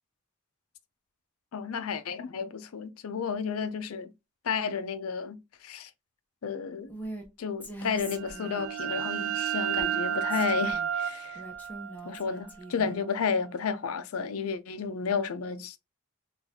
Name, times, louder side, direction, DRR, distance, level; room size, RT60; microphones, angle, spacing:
voice 1, 1.5-4.1 4.4-5.9 6.4-6.9 7.4-11.4 12.0-15.8, left 6 dB, 80° left, 0.5 m, -32 dB
Female speech woman speaking, 6.9-7.3 7.6-8.9 9.8-10.9 11.4-13.0, right 1 dB, 10° left, 0.7 m, -42 dB
sound 1, 8.1-13.6, right 9 dB, 65° right, 0.3 m, -33 dB
3.9 x 2.4 x 2.7 m
head